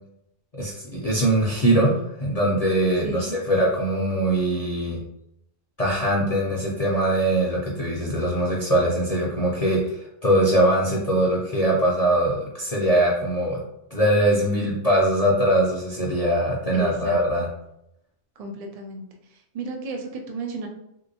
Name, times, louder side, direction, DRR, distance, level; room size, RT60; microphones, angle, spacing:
voice 1, 0.5-5.0 5.8-13.6 13.9-17.5, right 1 dB, 50° left, -4 dB, 0.5 m, -22 dB
voice 2, 3.0-3.4 16.7-17.2 18.4-19.0 19.5-20.7, right 2 dB, 75° right, 3 dB, 0.3 m, -33 dB
3.3 x 2.8 x 2.6 m, 0.82 s
omnidirectional pair, 1.2 m